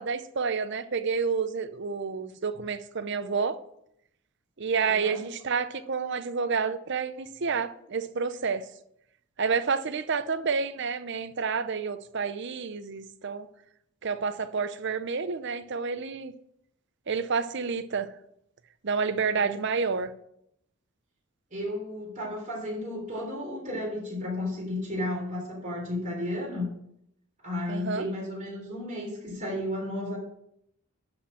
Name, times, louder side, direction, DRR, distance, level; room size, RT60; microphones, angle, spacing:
voice 1, 0.0-3.6 4.6-8.6 9.4-13.5 14.0-16.3 17.1-18.1 18.8-20.1 27.7-28.1, right 5 dB, 55° right, 0.6 m, -29 dB
voice 2, 4.8-5.2 19.4-19.5 21.5-26.7 27.4-30.2, left 1 dB, 35° right, 3.4 m, -33 dB
11.5 x 4.3 x 7.2 m
head